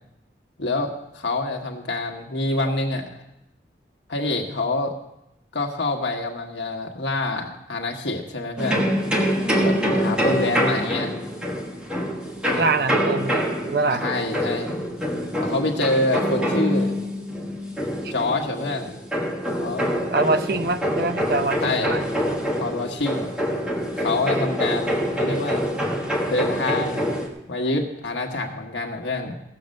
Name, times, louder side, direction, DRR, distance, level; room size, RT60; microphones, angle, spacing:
voice 1, 0.6-3.1 4.1-4.9 5.5-8.9 9.6-11.1 14.0-14.7 15.4-16.9 18.1-18.9 19.6-19.8 21.6-22.0 22.6-23.3 24.0-25.6 26.3-27.1 27.5-29.3, left 2 dB, 85° left, 1 dB, 1.4 m, -26 dB
sound 1, 8.6-27.3, equal, 5° right, 1.4 m, -25 dB
voice 2, 12.5-14.0 18.0-18.1 20.1-22.0, right 3 dB, 55° right, 9 dB, 0.7 m, -24 dB
16.5 x 7.3 x 6.5 m, 0.86 s
head